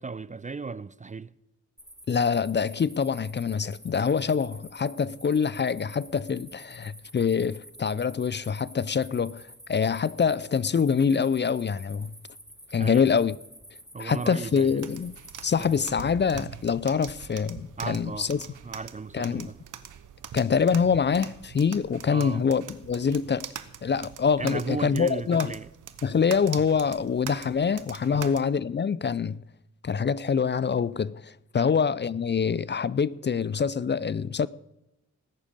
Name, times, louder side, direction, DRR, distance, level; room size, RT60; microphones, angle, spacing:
voice 1, 0.0-1.3 12.8-13.1 13.9-14.8 15.6-15.8 17.8-19.6 22.1-22.5 24.4-25.7 28.1-28.4 31.5-31.8, right 4 dB, 25° right, 0.4 m, -36 dB
sound 1, 1.8-15.8, equal, ahead, 3.0 m, -49 dB
voice 2, 2.1-9.4 9.7-12.1 12.7-13.4 14.0-15.1 15.4-18.4 19.1-19.5 20.3-23.5 23.8-25.5 26.0-29.4 29.8-34.5, left 6 dB, 35° left, 0.5 m, -25 dB
sound 2, 14.5-28.4, right 9 dB, 80° right, 1.0 m, -43 dB
19.0 x 6.4 x 8.8 m
cardioid pair, 65°, 31 cm